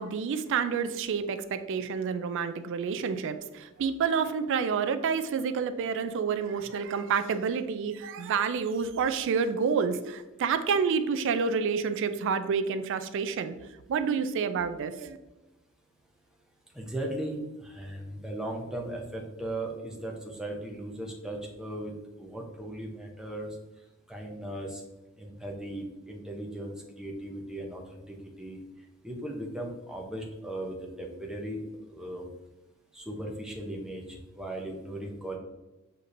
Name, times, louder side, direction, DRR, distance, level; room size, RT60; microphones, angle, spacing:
voice 1, 0.0-13.5 13.9-15.2, right 6 dB, 60° right, 11 dB, 0.3 m, -29 dB
voice 2, 16.7-23.6 24.1-24.8 25.2-28.6 29.0-31.6 31.9-32.3 32.9-35.4, right 1 dB, 5° right, 0 dB, 0.6 m, -37 dB
6.5 x 2.8 x 2.6 m, 1.1 s
head